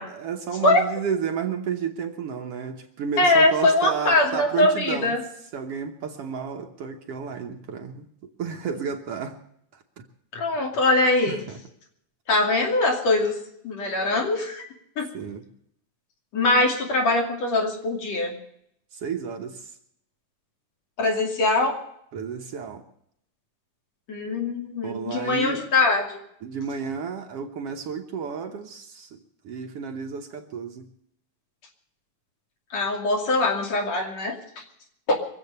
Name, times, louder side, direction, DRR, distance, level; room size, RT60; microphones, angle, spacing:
voice 1, 0.1-5.2 5.5-9.4 9.7-10.1 11.3-11.6 15.1-15.5 18.9-19.8 22.1-22.8 24.8-25.6 26.4-29.2 29.4-30.9, right 6 dB, 60° right, 1.8 m, -32 dB
voice 2, 3.2-5.2 10.3-11.4 12.3-13.4 13.6-14.6 15.0-15.1 16.3-18.4 21.0-21.8 24.1-26.2 32.7-34.6 35.1-35.2, left 2 dB, 65° left, 3.9 m, -22 dB
24.0 x 8.1 x 6.7 m
omnidirectional pair, 3.3 m